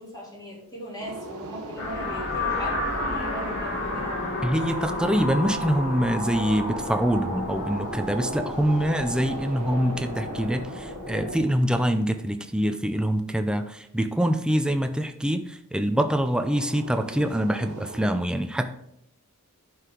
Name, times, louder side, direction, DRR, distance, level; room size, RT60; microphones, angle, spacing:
voice 1, 0.0-4.1, equal, 20° left, -5 dB, 3.1 m, -38 dB
sound 1, 1.0-4.1 7.5-12.8 16.3-18.1, right 2 dB, 90° right, 1.1 m, -43 dB
sound 2, 1.8-11.4, left 1 dB, 65° left, 3.2 m, -31 dB
voice 2, 4.4-18.7, equal, 5° right, 7 dB, 0.5 m, -25 dB
11.0 x 4.8 x 3.8 m, 0.76 s
head